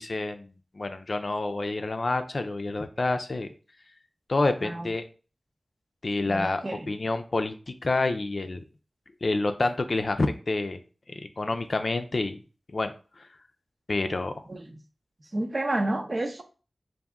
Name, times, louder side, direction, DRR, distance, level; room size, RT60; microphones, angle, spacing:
voice 1, 0.0-3.5 4.3-5.0 6.0-8.6 9.2-10.8 11.2-12.4 12.7-13.3 13.9-14.4, left 2 dB, 55° left, 8 dB, 0.5 m, -28 dB
voice 2, 6.3-6.9 14.5-14.6 15.3-16.4, right 1 dB, 45° right, 6 dB, 0.7 m, -30 dB
4.0 x 2.6 x 3.6 m, 0.35 s
cardioid pair, 50°, 0 cm